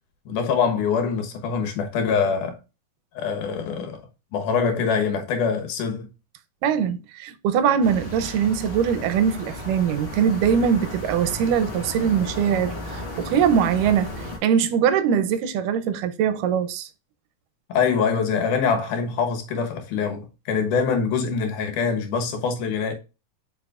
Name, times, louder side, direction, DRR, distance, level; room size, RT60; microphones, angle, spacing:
voice 1, 0.3-2.6 3.2-4.0 4.3-6.1 17.7-22.9, left 5 dB, 70° left, 2.7 m, -24 dB
voice 2, 6.6-16.9, right 7 dB, 80° right, 2.3 m, -22 dB
sound 1, 7.8-14.4, left 1 dB, 25° left, 1.2 m, -34 dB
7.4 x 5.4 x 2.4 m
omnidirectional pair, 3.8 m